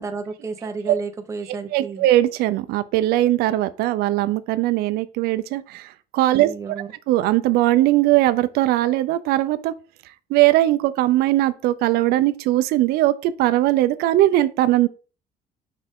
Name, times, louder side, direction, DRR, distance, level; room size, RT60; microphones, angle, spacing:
voice 1, 0.0-2.0 6.4-6.9, right 4 dB, 20° right, 0.8 m, -32 dB
voice 2, 1.5-6.5 7.1-9.7 10.3-14.9, right 15 dB, 85° right, 0.5 m, -20 dB
6.0 x 5.4 x 3.6 m
cardioid pair, 150°, 16 cm